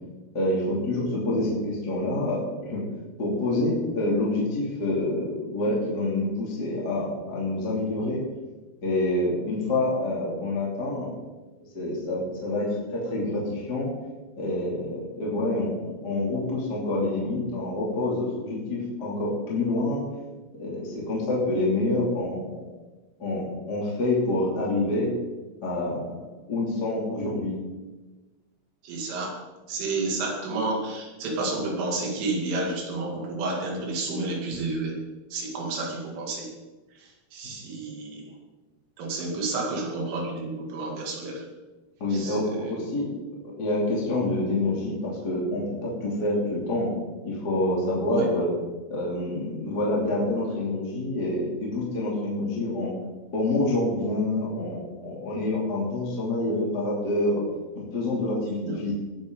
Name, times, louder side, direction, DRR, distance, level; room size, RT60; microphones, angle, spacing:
voice 1, 0.3-2.8 3.2-8.2 8.8-11.1 11.7-13.9 14.4-20.0 20.6-22.6 23.2-25.1 25.6-26.1 26.5-27.6 37.4-37.5 42.0-43.1 43.6-46.9 47.2-48.5 48.9-52.9 53.3-57.4 57.7-58.9, left 2 dB, 25° left, -5 dB, 2.9 m, -27 dB
voice 2, 28.8-29.4 29.7-35.0 35.3-36.5 37.0-38.3 39.0-41.5 42.1-42.7 48.1-48.3 58.6-58.8, right 2 dB, 85° right, -1 dB, 5.2 m, -30 dB
19.5 x 10.0 x 4.0 m, 1.2 s
omnidirectional pair, 5.5 m